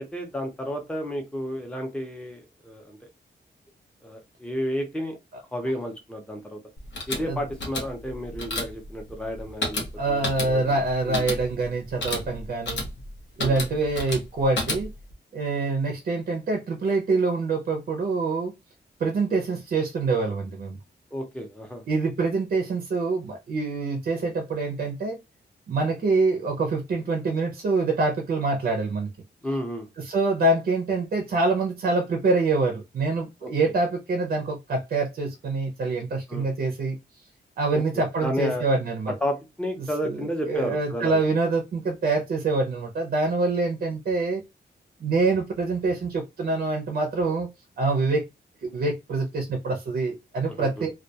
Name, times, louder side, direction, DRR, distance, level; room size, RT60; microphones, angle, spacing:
voice 1, 0.0-3.0 4.0-5.2 5.5-6.6 7.1-10.7 11.1-11.2 13.4-13.6 21.1-21.8 29.4-29.9 33.4-33.5 36.3-36.5 37.7-38.6 39.1-41.2 50.5-50.9, equal, 5° left, 0.5 m, -32 dB
sound 1, 6.8-15.1, left 2 dB, 85° left, 0.7 m, -33 dB
voice 2, 10.0-12.8 13.4-14.9 15.3-18.5 19.0-20.8 21.9-25.2 25.7-29.1 30.0-37.0 37.6-39.1 40.0-44.4 45.0-47.5 47.8-48.3 48.6-50.9, right 3 dB, 55° right, 0.5 m, -25 dB
2.2 x 2.1 x 2.7 m
wide cardioid pair, 170°, 18 cm